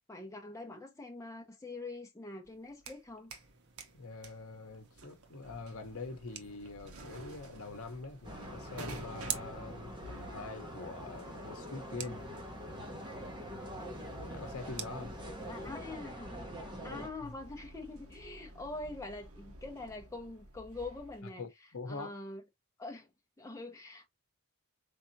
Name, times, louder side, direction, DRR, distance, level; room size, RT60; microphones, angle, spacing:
voice 1, 0.1-3.3 15.5-16.3 16.8-21.4 21.9-22.4 22.8-23.1 23.4-24.1, left 2 dB, 15° left, 0.8 m, -44 dB
sound 1, 2.4-3.5 3.8-21.2, right 2 dB, 70° right, 1.0 m, -52 dB
sound 2, 3.3-15.7, right 9 dB, 50° right, 0.7 m, -49 dB
voice 2, 3.9-12.2 14.3-15.1 16.9-17.4 21.2-22.1, left 3 dB, 65° left, 0.8 m, -44 dB
sound 3, 8.2-17.1, equal, 20° right, 0.9 m, -44 dB
4.2 x 3.5 x 2.6 m
head